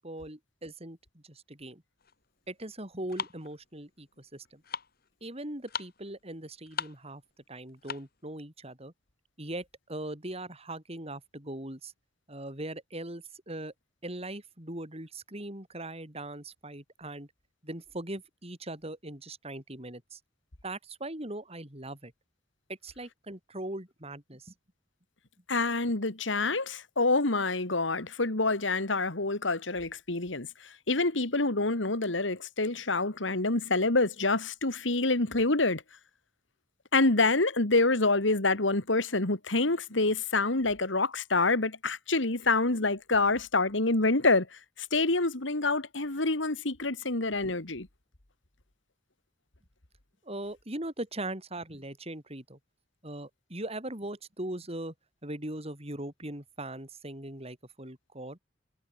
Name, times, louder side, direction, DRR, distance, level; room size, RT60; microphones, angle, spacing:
voice 1, 0.0-1.8 2.5-4.6 5.2-7.2 7.5-8.9 9.4-11.9 12.3-13.7 14.0-17.3 17.6-20.2 20.6-22.1 22.7-24.5 50.2-52.6 53.0-54.9 55.2-58.4, right 1 dB, 35° right, 6.4 m, -40 dB
sound 1, 2.0-8.2, left 6 dB, 55° left, 4.9 m, -41 dB
voice 2, 25.5-35.8 36.9-47.9, left 3 dB, 90° left, 2.5 m, -27 dB
head